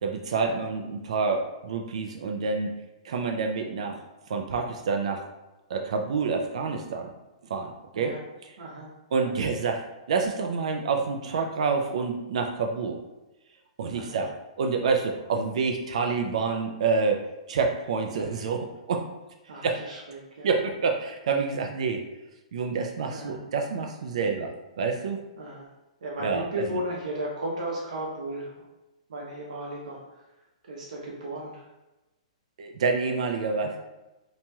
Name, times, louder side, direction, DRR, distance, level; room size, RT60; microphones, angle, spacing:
voice 1, 0.0-2.7 3.0-4.0 4.3-5.2 5.7-7.1 7.4-8.1 8.4-8.5 9.1-13.0 13.8-19.1 19.6-19.8 20.4-22.0 22.5-25.2 26.2-26.7 32.6-33.8, right 4 dB, 65° right, 3 dB, 0.3 m, -28 dB
voice 2, 8.6-8.9 9.1-9.3 13.9-14.2 18.1-18.4 19.5-20.5 23.1-23.4 25.4-25.7 26.0-28.5 29.1-30.0 30.6-31.7, right 1 dB, 80° right, -4 dB, 0.8 m, -35 dB
2.9 x 2.8 x 2.3 m, 1.0 s
hypercardioid pair, 170°, 4 cm